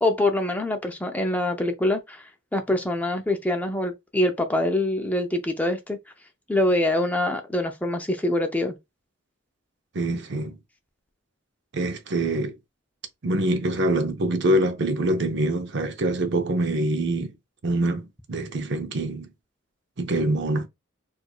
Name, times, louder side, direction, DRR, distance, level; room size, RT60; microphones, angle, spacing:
voice 1, 0.0-6.0 6.5-8.7, left 1 dB, 10° left, 0.4 m, -24 dB
voice 2, 9.9-10.6 11.7-12.6 13.2-17.3 17.6-19.3 20.0-20.7, right 1 dB, 60° right, 0.6 m, -25 dB
4.5 x 2.4 x 2.2 m
head